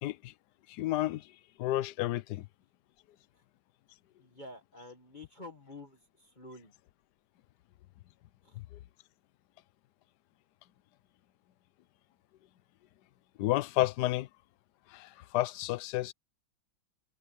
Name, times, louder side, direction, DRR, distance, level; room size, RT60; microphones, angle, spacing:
voice 1, 0.0-0.3 0.7-1.3 1.6-2.5 8.6-8.7 13.4-14.3 14.9-16.1, left 16 dB, 65° left, 1.1 m, -31 dB
voice 2, 4.2-6.7 8.4-8.6, left 2 dB, 25° left, 1.5 m, -49 dB
omnidirectional pair, 2.3 m